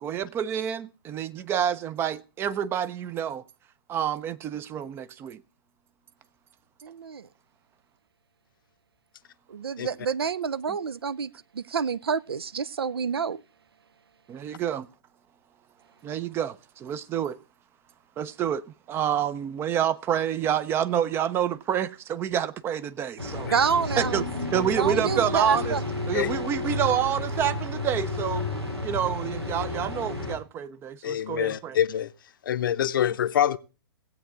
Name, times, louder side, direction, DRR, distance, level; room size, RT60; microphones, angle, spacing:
voice 1, 0.0-3.4 3.9-5.4 10.7-10.8 14.3-14.9 16.0-17.4 18.2-23.5 24.0-24.2 24.5-25.8 26.1-28.5 28.8-31.8, right 9 dB, 20° right, 0.5 m, -28 dB
voice 2, 6.8-7.3 9.5-13.4 23.5-24.2 24.8-25.8, right 6 dB, 70° right, 0.5 m, -28 dB
sound 1, 23.2-30.4, left 2 dB, 90° right, 2.9 m, -31 dB
voice 3, 31.0-32.1 32.4-33.6, left 10 dB, 55° left, 0.7 m, -25 dB
17.5 x 8.2 x 3.7 m
figure-of-eight pair, 115°, 13 cm